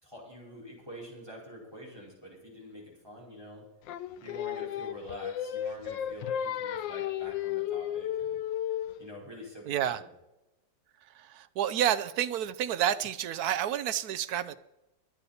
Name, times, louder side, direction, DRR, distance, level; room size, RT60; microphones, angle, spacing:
voice 1, 0.0-3.6 4.2-8.4 9.0-10.1, equal, 15° right, 4.9 m, -46 dB
Singing, 3.9-9.1, left 10 dB, 90° left, 1.4 m, -33 dB
voice 2, 9.7-10.0 11.1-14.5, right 10 dB, 65° right, 1.1 m, -30 dB
23.0 x 8.3 x 4.2 m
omnidirectional pair, 1.9 m